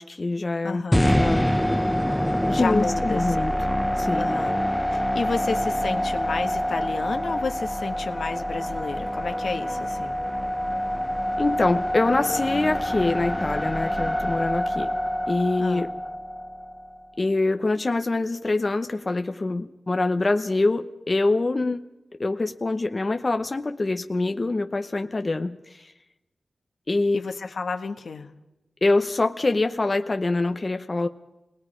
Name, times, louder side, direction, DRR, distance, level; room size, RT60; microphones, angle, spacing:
voice 1, 0.0-0.8 1.1-1.5 2.5-3.5 4.0-4.4 11.4-14.9 15.3-15.9 17.2-21.8 22.2-25.9 26.9-27.2 28.8-31.1, left 2 dB, 35° left, 7 dB, 0.8 m, -24 dB
voice 2, 0.6-1.2 2.5-3.4 4.1-4.6 4.9-10.1 15.6-15.9 27.1-28.3, left 4 dB, 75° left, 6 dB, 1.5 m, -31 dB
sound 1, 0.9-17.1, equal, 5° left, 0.9 m, -26 dB
28.0 x 19.5 x 5.0 m, 0.97 s
wide cardioid pair, 100°, 0 cm